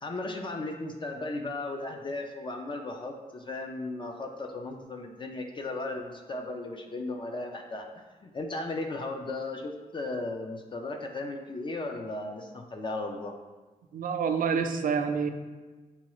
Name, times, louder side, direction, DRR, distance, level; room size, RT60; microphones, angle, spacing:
voice 1, 0.0-7.9 8.2-13.3, left 2 dB, 30° left, 3 dB, 0.3 m, -36 dB
voice 2, 13.9-15.3, right 6 dB, 65° right, 6 dB, 0.4 m, -27 dB
6.7 x 2.3 x 3.0 m, 1.3 s
wide cardioid pair, 160°, 15 cm